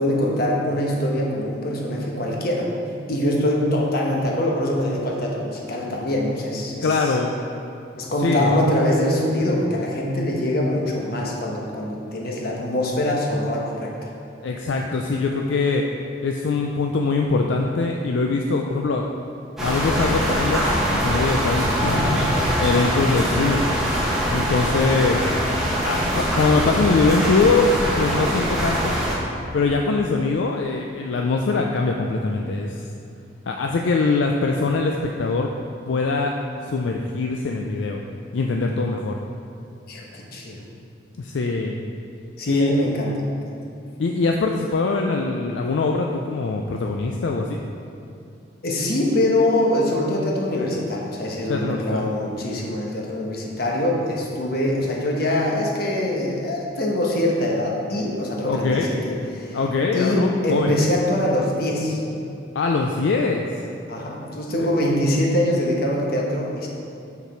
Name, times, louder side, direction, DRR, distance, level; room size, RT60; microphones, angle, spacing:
voice 1, 0.0-2.7 3.1-7.2 8.0-14.1 21.8-22.4 39.9-40.6 42.4-43.1 48.6-59.6 59.9-62.0 63.9-66.7, left 1 dB, 55° left, -2 dB, 1.1 m, -23 dB
voice 2, 6.8-7.3 8.2-8.6 14.4-15.9 16.2-19.1 19.6-20.7 20.9-22.3 22.6-23.6 24.3-25.2 25.7-27.7 28.0-29.0 29.5-32.8 33.5-35.5 35.9-36.3 36.6-38.0 38.3-39.2 41.2-41.8 42.5-42.7 44.0-47.6 51.5-52.1 58.4-59.0 59.5-60.7 62.5-63.5 64.6-64.7, left 3 dB, 75° left, 1 dB, 0.4 m, -22 dB
sound 1, 19.6-29.1, equal, ahead, 1.3 m, -23 dB
5.9 x 5.8 x 4.3 m, 2.8 s
head